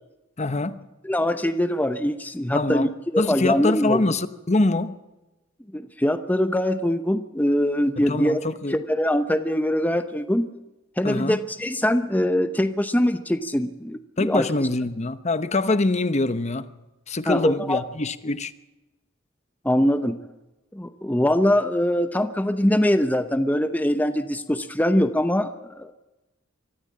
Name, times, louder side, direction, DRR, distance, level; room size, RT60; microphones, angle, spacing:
voice 1, 0.4-0.8 2.5-2.9 3.2-5.0 8.0-8.8 11.0-11.4 14.2-16.7 17.1-18.5, left 2 dB, 35° left, 0.9 m, -24 dB
voice 2, 1.0-4.0 5.7-8.4 8.7-10.5 11.0-14.5 17.3-17.8 19.6-20.2 20.7-25.9, left 1 dB, 10° left, 0.8 m, -23 dB
24.0 x 14.0 x 8.6 m
head